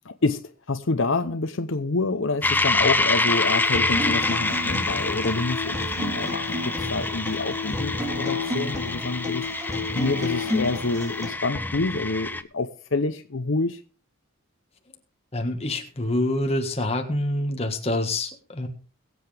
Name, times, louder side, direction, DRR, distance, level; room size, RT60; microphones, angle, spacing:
voice 1, 0.0-13.8, left 3 dB, 65° left, 0.8 m, -27 dB
sound 1, 2.4-12.4, left 2 dB, 10° left, 0.5 m, -27 dB
Acoustic guitar, 3.3-11.3, left 3 dB, 15° right, 3.5 m, -32 dB
voice 2, 15.3-18.7, left 1 dB, 30° left, 1.6 m, -26 dB
22.5 x 7.8 x 3.4 m
head